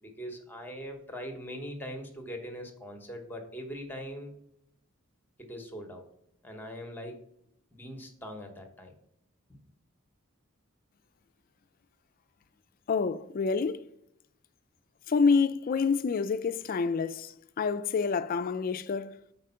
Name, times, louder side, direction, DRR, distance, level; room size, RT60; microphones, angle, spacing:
voice 1, 0.0-4.3 5.4-6.0 6.4-7.2 7.7-8.9 9.5-9.6, equal, 10° left, 0.8 m, -41 dB
voice 2, 12.9-13.8 15.1-19.2, left 5 dB, 40° left, 0.3 m, -28 dB
5.0 x 4.3 x 5.5 m
head